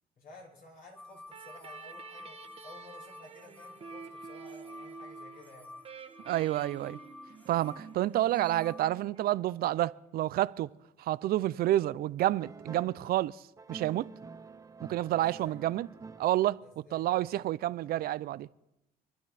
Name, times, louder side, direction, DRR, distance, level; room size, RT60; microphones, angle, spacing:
voice 1, 0.2-2.4 2.6-5.7 15.1-15.7 16.6-17.3, left 2 dB, 55° left, 4.8 m, -54 dB
sound 1, 1.0-8.9, left 2 dB, 10° left, 0.9 m, -51 dB
sound 2, 1.3-9.8, right 6 dB, 35° right, 1.2 m, -49 dB
voice 2, 6.3-7.0 7.5-10.7 11.0-13.4 13.7-14.1 14.9-15.9 16.2-16.6 16.9-18.5, right 14 dB, 65° right, 0.5 m, -29 dB
sound 3, 12.4-13.1 13.6-16.6, right 4 dB, 20° right, 0.7 m, -48 dB
27.5 x 11.5 x 4.2 m
cardioid pair, 110°, 17 cm